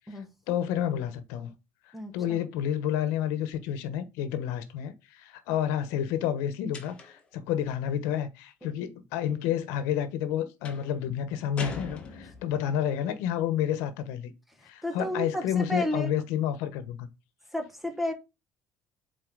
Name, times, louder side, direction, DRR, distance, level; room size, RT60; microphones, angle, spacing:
voice 1, 0.1-1.5 2.1-14.3 14.6-17.1, left 10 dB, 80° left, 1.0 m, -30 dB
voice 2, 1.9-2.4 8.6-8.7 14.6-16.1 17.5-18.1, left 1 dB, 5° right, 1.0 m, -32 dB
sound 1, 6.7-7.3 10.6-10.9 11.6-12.6, left 4 dB, 25° left, 1.2 m, -40 dB
7.8 x 4.2 x 3.9 m
cardioid pair, 175°, 5 cm